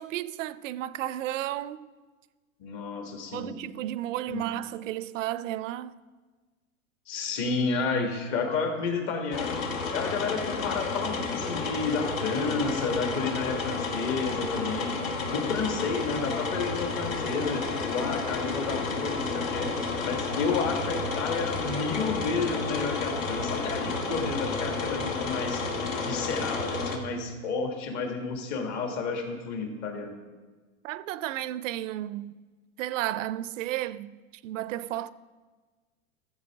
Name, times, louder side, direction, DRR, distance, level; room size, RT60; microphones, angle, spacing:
voice 1, 0.0-1.9 3.3-6.0 30.8-32.3 32.8-34.2 34.4-35.1, right 13 dB, 65° right, 0.5 m, -33 dB
voice 2, 2.6-3.5 4.3-4.5 7.1-9.6 9.9-15.0 15.3-19.7 20.0-25.6 26.0-30.2, left 4 dB, 40° left, 1.6 m, -31 dB
sound 1, 9.3-27.0, left 4 dB, 70° left, 1.4 m, -31 dB
13.0 x 7.3 x 3.5 m
hypercardioid pair, 110°, 41 cm